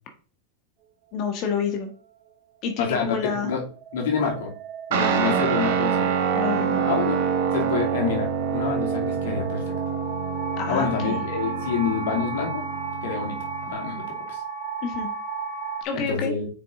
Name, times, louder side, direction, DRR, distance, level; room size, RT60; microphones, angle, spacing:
voice 1, 1.1-1.9 2.6-3.5 4.9-5.5 6.3-6.8 10.6-11.2 14.8-15.1 15.8-16.3, left 5 dB, 45° left, 5 dB, 1.5 m, -29 dB
voice 2, 2.8-3.6 3.9-4.5 4.9-6.2 6.9-7.2 7.5-9.7 10.7-12.6 13.0-13.4 13.7-14.4 15.9-16.5, left 6 dB, 75° left, 1 dB, 2.4 m, -27 dB
sound 1, 3.1-15.8, right 6 dB, 55° right, 2.8 m, -35 dB
Guitar, 4.9-13.7, right 7 dB, 70° right, 1.4 m, -26 dB
6.8 x 5.4 x 3.7 m, 0.39 s
supercardioid pair, 125°, 0 cm